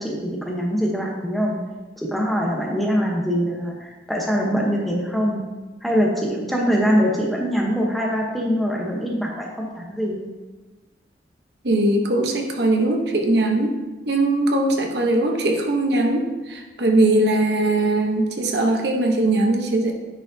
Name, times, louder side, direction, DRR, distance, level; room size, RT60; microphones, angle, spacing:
voice 1, 0.0-1.6 2.0-5.4 5.8-10.3, equal, ahead, -2 dB, 0.9 m, -23 dB
voice 2, 11.6-13.7 14.1-19.9, right 2 dB, 70° right, 2 dB, 0.9 m, -20 dB
9.8 x 5.0 x 2.7 m, 1.2 s
head